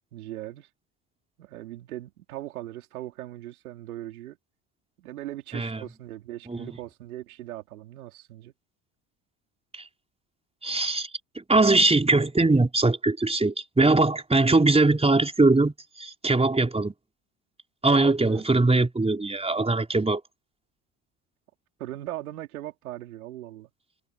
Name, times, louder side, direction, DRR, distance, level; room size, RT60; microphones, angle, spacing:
voice 1, 0.1-0.7 1.4-4.4 5.0-8.5 17.9-18.4 21.8-23.7, right 14 dB, 85° right, 4.6 m, -39 dB
voice 2, 10.6-11.1 11.3-16.9 17.8-20.2, right 2 dB, 15° right, 4.7 m, -21 dB
hypercardioid pair, 70°, 42 cm